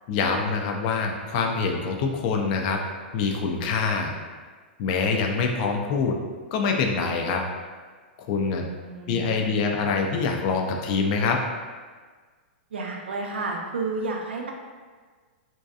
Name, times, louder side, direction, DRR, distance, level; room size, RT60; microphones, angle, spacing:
voice 1, 0.1-2.8 3.1-4.1 4.8-6.2 6.5-7.4 8.3-8.7 9.1-11.4, left 4 dB, 45° left, 2 dB, 0.4 m, -25 dB
voice 2, 8.8-9.6 12.7-14.5, right 3 dB, 80° right, 1 dB, 0.4 m, -31 dB
2.7 x 2.2 x 2.3 m, 1.5 s
hypercardioid pair, 120°, 6 cm